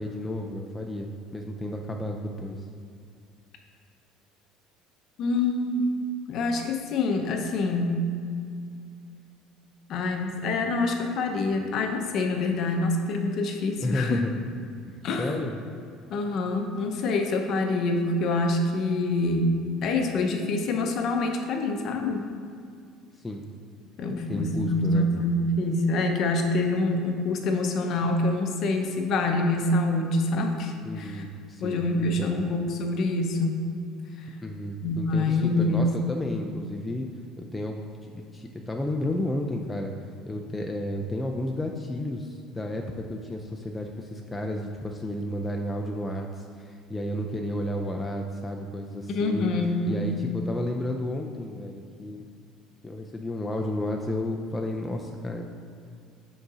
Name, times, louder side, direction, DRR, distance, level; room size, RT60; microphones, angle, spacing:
voice 1, 0.0-2.6 13.8-14.3 14.9-15.6 23.2-23.4 24.3-25.1 30.8-32.5 34.4-37.1 37.4-39.9 40.3-49.5 49.9-52.2 52.8-55.4, left 1 dB, 10° left, 1 dB, 0.3 m, -32 dB
voice 2, 5.2-5.9 6.3-8.1 9.9-14.2 15.0-15.3 16.1-19.5 19.8-22.2 24.0-31.2 31.6-33.6 34.8-35.9 49.1-50.1, left 2 dB, 45° left, 4 dB, 0.6 m, -26 dB
5.2 x 4.0 x 4.8 m, 2.3 s
cardioid pair, 150°, 0 cm